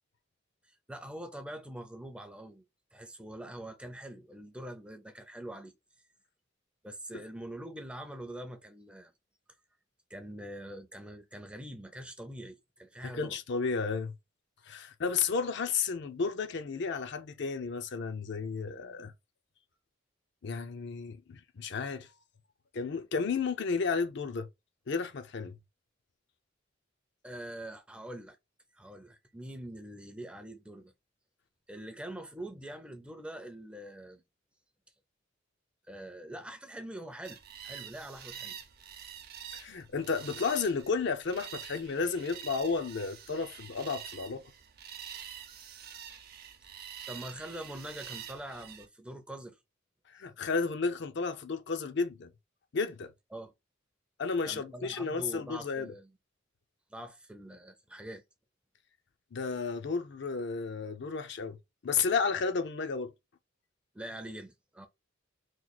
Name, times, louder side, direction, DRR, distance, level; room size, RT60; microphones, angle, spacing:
voice 1, 0.9-2.6 2.9-5.7 6.8-9.1 10.1-13.4 27.2-28.4 28.7-30.9 31.7-34.2 35.9-38.6 47.1-49.6 53.3-53.5 54.4-56.1 56.9-58.2 63.9-64.9, right 1 dB, 5° right, 0.5 m, -44 dB
voice 2, 13.1-14.1 14.7-19.1 20.4-22.1 22.7-24.5 24.9-25.5 39.5-44.4 50.1-52.3 52.7-53.1 54.2-55.9 59.3-61.6 61.8-63.1, left 5 dB, 60° left, 0.5 m, -32 dB
sound 1, 37.2-48.9, right 9 dB, 50° right, 0.6 m, -46 dB
3.1 x 2.4 x 3.8 m
head